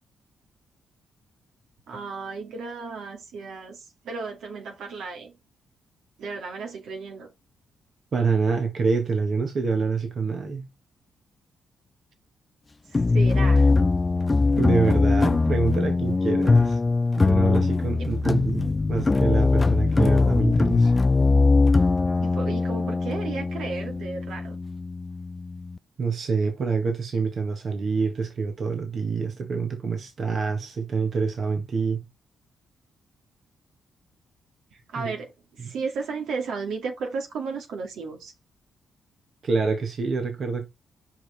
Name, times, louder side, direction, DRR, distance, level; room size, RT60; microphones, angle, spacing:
voice 1, 1.9-5.4 6.2-7.3 12.9-13.7 18.0-18.1 22.2-24.6 34.7-35.3 35.6-38.3, right 4 dB, 75° right, 2.3 m, -34 dB
voice 2, 8.1-10.7 14.6-16.8 17.2-20.9 26.0-32.0 35.0-35.1 35.6-35.7 39.4-40.7, right 4 dB, 55° right, 1.8 m, -26 dB
sound 1, 12.9-25.8, left 3 dB, 30° left, 0.4 m, -21 dB
6.0 x 5.5 x 4.4 m
supercardioid pair, 50°, 0 cm